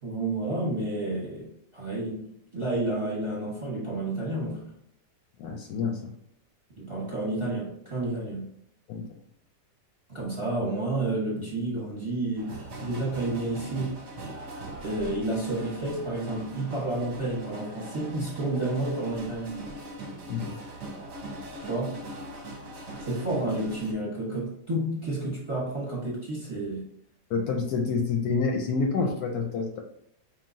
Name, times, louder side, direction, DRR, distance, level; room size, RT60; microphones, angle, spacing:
voice 1, 0.0-4.8 6.8-8.5 10.1-13.9 14.8-19.6 21.6-22.0 23.0-26.9, right 2 dB, 20° right, -4 dB, 0.9 m, -30 dB
voice 2, 5.4-6.1 8.9-9.0 20.3-20.5 27.3-29.8, left 4 dB, 70° left, 2 dB, 1.0 m, -28 dB
sound 1, 12.4-23.9, right 1 dB, 50° right, 0.9 m, -41 dB
4.9 x 2.8 x 2.6 m, 0.74 s
omnidirectional pair, 1.9 m